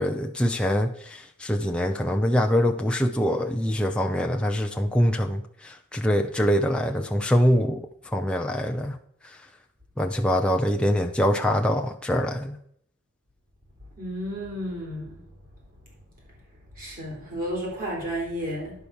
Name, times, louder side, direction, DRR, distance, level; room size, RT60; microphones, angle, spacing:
voice 1, 0.0-9.0 9.2-9.4 10.0-12.6, equal, 5° left, 0.4 m, -24 dB
voice 2, 14.0-15.2 16.8-18.7, equal, 40° right, 3.6 m, -32 dB
10.5 x 4.7 x 6.9 m
head